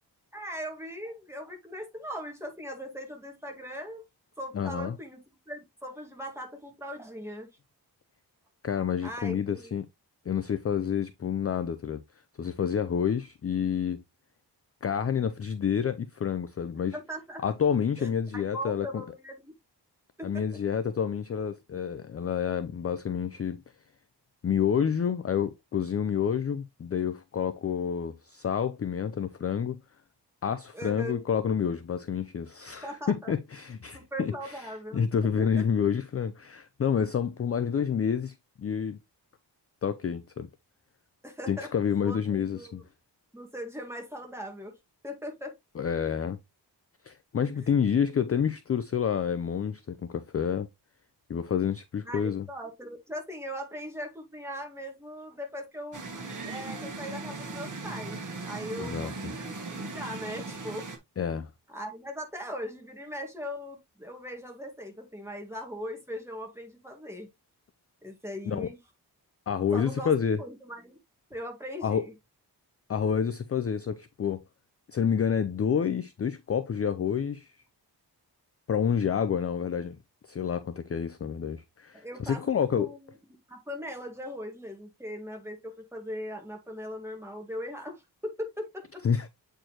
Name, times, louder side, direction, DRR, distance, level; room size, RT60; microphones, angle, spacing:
voice 1, 0.3-4.0 4.4-7.5 9.0-9.7 16.9-17.4 18.0-19.5 20.2-20.4 30.7-31.2 32.8-33.3 33.9-35.0 35.4-35.6 41.2-41.7 42.0-42.8 43.3-44.7 45.0-45.5 47.6-47.7 52.0-60.9 61.7-67.3 68.0-68.8 69.7-70.1 70.4-71.0 71.3-72.1 81.9-83.1 83.5-89.0, equal, 5° right, 1.7 m, -39 dB
voice 2, 4.5-5.0 8.6-9.9 10.3-12.0 12.4-14.0 14.8-17.0 17.4-19.0 20.2-23.6 24.4-29.8 30.4-39.0 39.8-40.5 41.5-42.8 45.8-46.4 47.0-50.7 51.3-52.5 58.8-59.1 61.2-61.5 68.5-68.7 69.5-70.4 71.8-72.0 72.9-74.4 74.9-77.5 78.7-80.0 80.3-82.9 89.0-89.3, left 7 dB, 35° left, 0.4 m, -29 dB
sound 1, 55.9-61.0, right 3 dB, 45° right, 1.4 m, -38 dB
7.8 x 4.4 x 2.8 m
wide cardioid pair, 165°, 41 cm